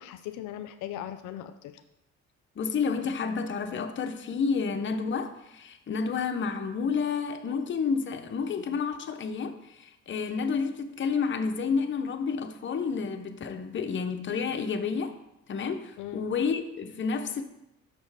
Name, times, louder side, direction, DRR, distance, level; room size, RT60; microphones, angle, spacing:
voice 1, 0.0-1.8 16.0-16.3, left 11 dB, 90° left, 0.4 m, -39 dB
voice 2, 2.6-15.2 15.5-17.4, left 5 dB, 40° left, 0.7 m, -30 dB
6.0 x 4.3 x 4.8 m
cardioid pair, 90°, 30 cm